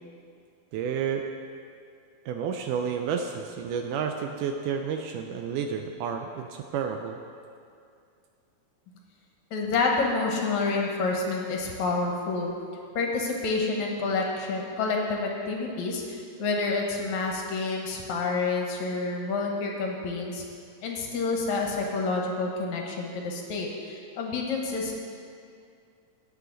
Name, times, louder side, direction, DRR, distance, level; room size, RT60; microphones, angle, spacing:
voice 1, 0.7-1.3 2.3-7.2, right 7 dB, 80° right, 4 dB, 1.9 m, -30 dB
voice 2, 9.5-12.5 13.0-20.4 20.8-24.9, left 3 dB, 65° left, 0 dB, 2.1 m, -28 dB
17.5 x 6.9 x 3.9 m, 2.3 s
omnidirectional pair, 4.1 m